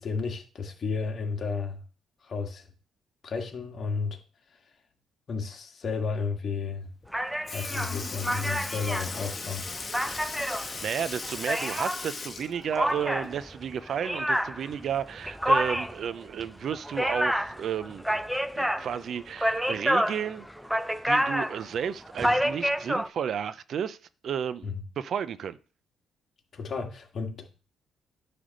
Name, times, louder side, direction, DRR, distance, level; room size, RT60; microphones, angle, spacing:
voice 1, 0.0-1.8 2.2-2.7 3.2-4.2 5.3-6.9 7.5-9.7 24.6-24.8 26.5-27.4, left 5 dB, 50° left, 1.9 m, -32 dB
Sink (filling or washing) / Liquid, 7.0-7.1 7.5-13.6 13.9-14.0 15.6-15.7 16.6-16.7 17.5-17.7 18.5-18.6, left 3 dB, 30° left, 1.2 m, -38 dB
sound 1, 7.1-12.0 12.7-23.1, equal, ahead, 0.6 m, -29 dB
voice 2, 10.5-18.2 18.6-20.5 21.0-24.0 24.2-25.6, right 8 dB, 60° right, 0.5 m, -32 dB
9.9 x 3.3 x 6.4 m
cardioid pair, 90°, 0 cm